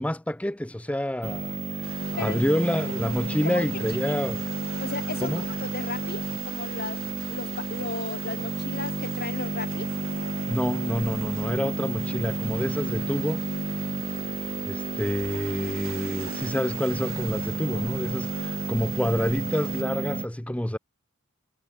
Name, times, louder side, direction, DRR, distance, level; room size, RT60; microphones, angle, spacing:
voice 1, 0.0-4.4 5.2-5.4 10.5-13.5 14.7-20.8, left 1 dB, 5° left, 0.6 m, -28 dB
sound 1, 1.2-20.3, right 2 dB, 30° right, 1.4 m, -31 dB
sound 2, 1.8-19.8, right 5 dB, 65° right, 2.8 m, -44 dB
voice 2, 3.4-4.2 4.8-7.0 7.3-9.9 17.7-17.9, left 4 dB, 45° left, 1.8 m, -35 dB
head